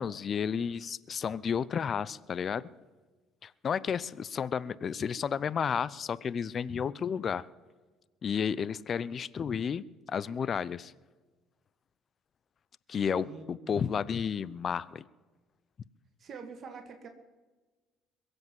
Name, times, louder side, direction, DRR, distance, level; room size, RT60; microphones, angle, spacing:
voice 1, 0.0-2.7 3.4-7.4 8.2-10.9 12.9-15.0, left 7 dB, 45° left, 20 dB, 0.6 m, -32 dB
voice 2, 13.1-13.9 16.2-17.1, right 5 dB, 50° right, 6 dB, 1.9 m, -46 dB
22.0 x 7.9 x 7.4 m, 1.3 s
hypercardioid pair, 60°, 0 cm